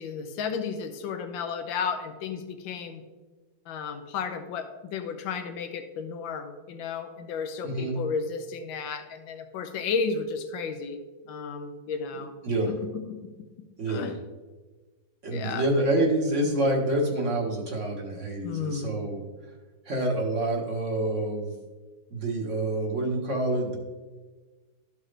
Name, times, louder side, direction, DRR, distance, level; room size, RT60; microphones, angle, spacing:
voice 1, 0.0-3.0 3.7-11.0 11.3-12.3 12.7-13.2 13.9-14.1 15.3-15.6 18.4-18.9, left 5 dB, 90° left, 7 dB, 1.5 m, -33 dB
voice 2, 7.6-7.9 12.2-12.7 13.8-14.1 15.2-19.2 19.8-21.6 22.1-23.8, right 1 dB, 45° right, 0 dB, 1.5 m, -27 dB
13.0 x 5.1 x 3.3 m, 1.3 s
omnidirectional pair, 2.0 m